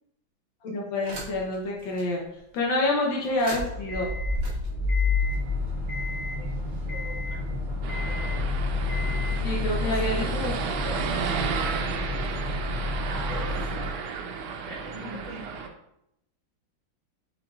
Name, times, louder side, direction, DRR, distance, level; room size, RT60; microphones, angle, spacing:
voice 1, 0.6-2.2 2.5-4.1 9.4-10.5 10.8-11.1, left 2 dB, 75° left, -1 dB, 1.4 m, -28 dB
sound 1, 1.0-1.5 2.0-2.1 3.2-13.9, left 3 dB, 40° right, 1.0 m, -29 dB
voice 2, 6.9-8.4 9.8-10.3 13.0-13.7 14.7-15.4, right 1 dB, 70° right, -3 dB, 2.1 m, -41 dB
sound 2, 7.8-15.7, right 6 dB, 90° right, 1.4 m, -33 dB
5.7 x 3.7 x 2.3 m, 0.80 s
omnidirectional pair, 2.2 m